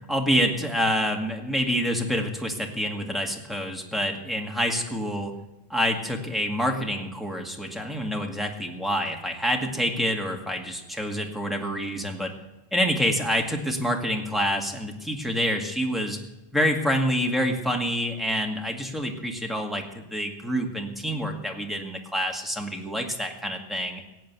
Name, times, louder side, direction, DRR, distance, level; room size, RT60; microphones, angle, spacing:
voice 1, 0.1-5.3 5.7-12.3 12.7-16.2 16.5-24.0, equal, ahead, 1 dB, 2.0 m, -27 dB
17.0 x 8.4 x 8.2 m, 0.97 s
omnidirectional pair, 1.1 m